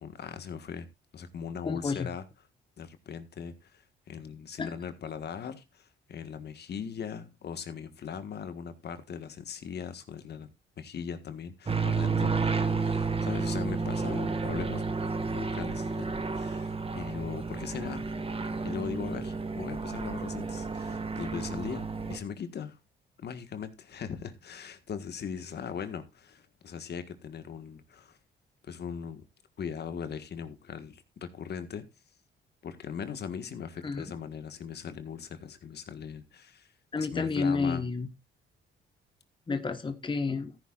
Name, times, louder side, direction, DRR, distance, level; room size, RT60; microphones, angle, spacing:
voice 1, 0.0-0.9 1.1-2.2 2.8-10.5 10.8-12.3 12.7-14.9 15.3-18.0 18.6-22.8 23.2-28.2 28.6-29.2 29.6-31.8 32.6-36.7 37.0-37.8, left 7 dB, 55° left, 10 dB, 1.6 m, -39 dB
voice 2, 1.7-2.1 4.6-4.7 33.8-34.1 36.9-38.1 39.5-40.6, left 4 dB, 25° left, 9 dB, 1.3 m, -30 dB
sound 1, 11.7-22.2, right 4 dB, 30° right, 1.8 m, -31 dB
15.0 x 9.7 x 2.5 m, 0.23 s
cardioid pair, 90°, 20 cm